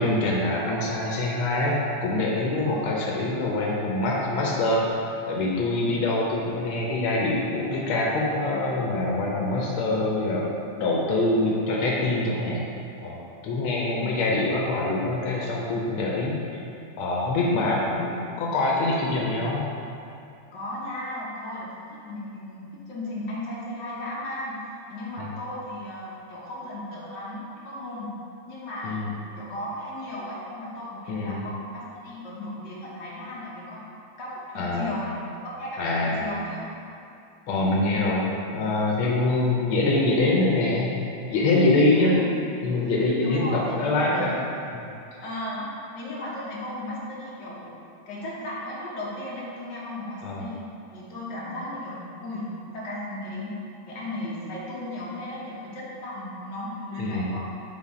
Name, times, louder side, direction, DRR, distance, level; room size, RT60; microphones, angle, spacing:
voice 1, 0.0-4.9 5.3-10.5 10.8-12.6 13.0-13.2 13.4-16.3 17.0-19.6 25.2-25.3 28.8-29.1 31.1-31.4 34.5-34.9 35.8-36.2 37.5-38.2 38.5-40.9 41.3-42.1 42.6-44.4 50.2-50.5 57.0-57.3, left 2 dB, 85° left, -3 dB, 1.6 m, -24 dB
voice 2, 2.7-3.0 13.7-14.2 17.6-17.7 20.5-28.2 28.5-33.8 34.2-35.1 35.6-36.7 41.9-42.3 43.2-44.4 45.2-45.6 46.0-47.8 48.1-50.7 50.9-53.5 53.9-57.4, left 1 dB, 60° left, -6 dB, 1.8 m, -36 dB
5.8 x 3.9 x 4.9 m, 2.6 s
omnidirectional pair, 2.2 m